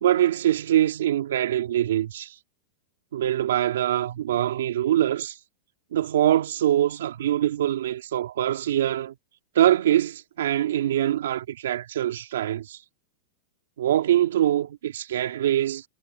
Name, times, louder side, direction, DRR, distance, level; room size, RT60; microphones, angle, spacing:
voice 1, 0.0-2.3 3.1-5.4 5.9-9.1 9.5-12.8 13.8-15.8, right 12 dB, 85° right, 2.7 m, -23 dB
supercardioid pair, 175°, 0 cm